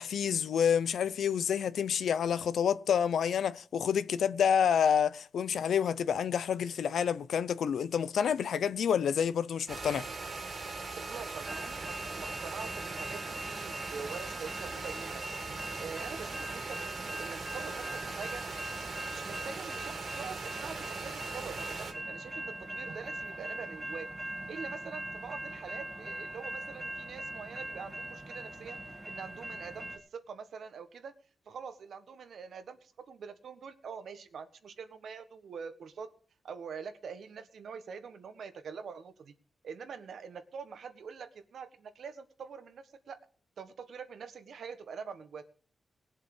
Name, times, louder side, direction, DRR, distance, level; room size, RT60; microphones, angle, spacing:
voice 1, 0.0-10.1, left 8 dB, 85° left, 0.6 m, -28 dB
sound 1, 9.7-21.9, right 3 dB, 50° right, 2.6 m, -40 dB
voice 2, 10.9-15.2 15.8-18.4 19.1-31.1 31.4-36.1 36.4-39.3 39.6-43.2 43.6-45.5, right 6 dB, 70° right, 1.4 m, -45 dB
sound 2, 11.4-30.0, right 1 dB, 10° right, 1.8 m, -42 dB
19.5 x 7.5 x 4.9 m
wide cardioid pair, 135°, 0 cm